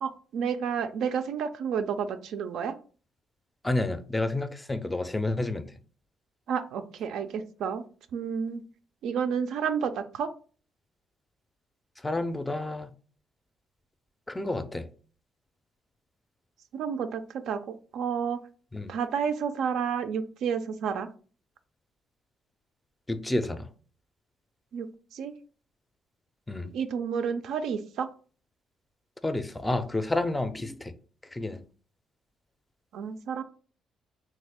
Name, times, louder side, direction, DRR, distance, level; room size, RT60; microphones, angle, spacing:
voice 1, 0.0-2.7 6.5-7.8 8.1-8.6 9.0-10.3 16.7-18.4 18.9-21.1 24.7-25.3 26.7-28.1 32.9-33.4, right 7 dB, 80° right, 0.3 m, -30 dB
voice 2, 3.6-5.7 12.0-12.9 14.3-14.9 18.7-18.9 23.1-23.7 26.5-26.7 29.2-30.9 31.3-31.6, left 2 dB, 15° left, 0.4 m, -30 dB
3.1 x 2.3 x 3.4 m
cardioid pair, 90°, 0 cm